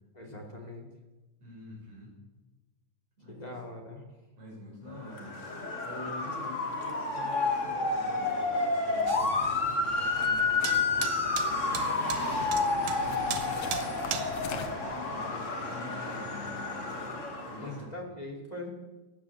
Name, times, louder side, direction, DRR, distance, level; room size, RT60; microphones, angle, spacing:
voice 1, 0.2-0.9 3.3-4.0 17.6-18.7, left 1 dB, 15° left, 1 dB, 2.5 m, -41 dB
voice 2, 1.4-2.2 3.2-3.6 4.4-11.1 11.9-14.1 14.4-16.9 17.4-17.9, left 1 dB, 50° right, -3 dB, 7.7 m, -47 dB
Motor vehicle (road) / Siren, 5.1-17.8, left 3 dB, 30° left, 1.7 m, -30 dB
sound 1, 9.1-9.5 10.0-11.4 11.8-12.4 13.0-15.0, left 7 dB, 65° left, 1.2 m, -44 dB
sound 2, 9.1-14.8, right 8 dB, 70° right, 2.2 m, -39 dB
17.0 x 10.5 x 7.4 m, 1.2 s
omnidirectional pair, 3.8 m